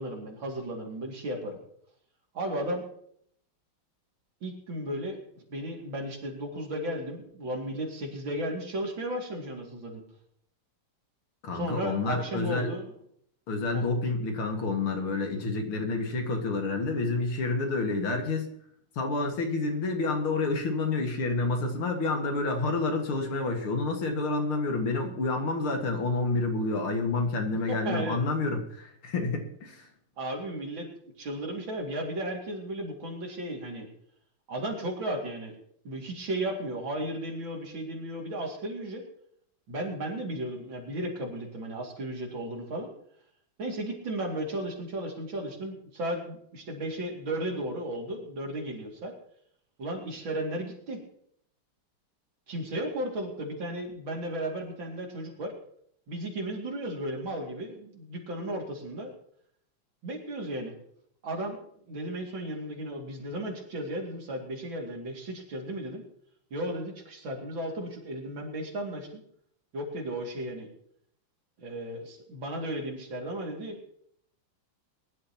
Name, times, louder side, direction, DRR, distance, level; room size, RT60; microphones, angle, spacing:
voice 1, 0.0-1.6 2.3-2.8 4.4-5.2 5.5-10.0 11.5-12.9 13.7-13.8 27.7-28.2 30.2-30.9 31.2-33.9 34.5-35.6 35.8-39.0 39.7-42.9 43.6-49.1 49.8-51.0 52.5-55.5 56.1-59.1 60.0-60.7 61.2-61.6 61.9-66.0 66.5-69.2 69.7-70.7 71.6-73.9, right 1 dB, 65° right, 0 dB, 3.2 m, -34 dB
voice 2, 11.4-12.7 13.5-18.5 19.0-29.9, left 3 dB, 75° left, 4 dB, 2.6 m, -29 dB
21.5 x 11.5 x 2.9 m, 0.67 s
omnidirectional pair, 2.4 m